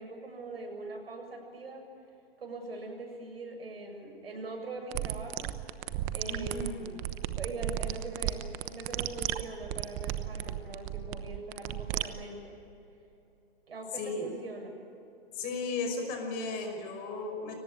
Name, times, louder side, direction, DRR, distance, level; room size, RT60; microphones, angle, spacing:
voice 1, 0.0-1.8 2.4-5.5 6.1-6.8 7.4-12.6 13.7-14.7, right 2 dB, 75° right, 3 dB, 7.3 m, -42 dB
sound 1, 4.9-12.1, right 14 dB, 25° right, 1.0 m, -34 dB
voice 2, 6.3-7.0 13.9-14.3 15.3-17.6, left 3 dB, 30° left, 3 dB, 5.6 m, -35 dB
23.5 x 19.0 x 8.8 m, 2.9 s
hypercardioid pair, 130°, 31 cm